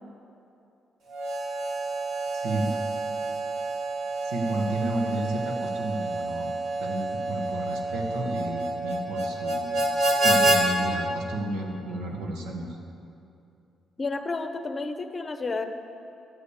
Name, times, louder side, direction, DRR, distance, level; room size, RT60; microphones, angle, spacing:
Harmonica, 1.1-10.6, right 2 dB, 70° right, 1.8 m, -28 dB
voice 1, 2.3-2.8 4.3-6.5 6.8-9.8 10.2-12.7, right 1 dB, 90° right, 2 dB, 1.4 m, -31 dB
voice 2, 14.0-15.6, left 3 dB, 30° left, 7 dB, 0.8 m, -31 dB
11.5 x 5.6 x 8.2 m, 2.8 s
cardioid pair, 90°, 0 cm